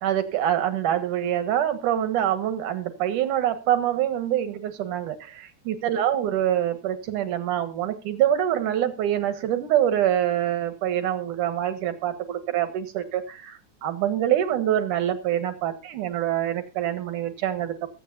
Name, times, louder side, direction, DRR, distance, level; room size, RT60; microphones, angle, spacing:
voice 1, 0.0-17.9, right 11 dB, 80° right, 10 dB, 3.0 m, -25 dB
23.0 x 8.5 x 2.7 m, 0.29 s
omnidirectional pair, 3.5 m